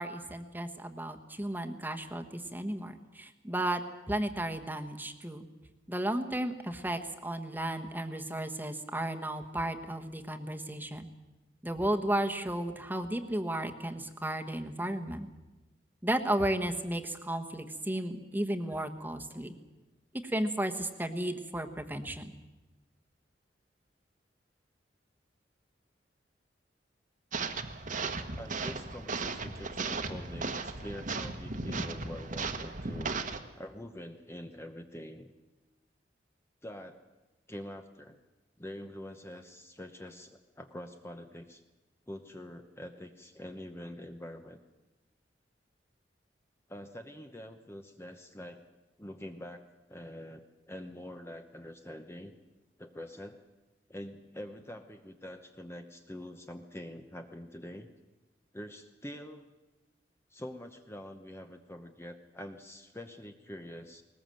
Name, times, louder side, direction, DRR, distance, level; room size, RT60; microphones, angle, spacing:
voice 1, 0.0-3.8 4.1-5.5 5.9-11.1 11.6-15.3 16.0-19.5 20.2-22.3, right 1 dB, 10° right, 5 dB, 1.3 m, -34 dB
sound 1, 27.3-33.4, right 4 dB, 50° right, 1.4 m, -36 dB
voice 2, 28.4-33.1 33.6-35.3 36.6-37.0 37.5-38.2 38.6-41.6 42.1-44.6 46.7-48.6 49.0-52.3 52.8-53.4 53.9-57.9 58.5-59.4 60.3-64.0, left 1 dB, 15° left, 5 dB, 0.9 m, -45 dB
20.0 x 20.0 x 7.7 m, 1.1 s
head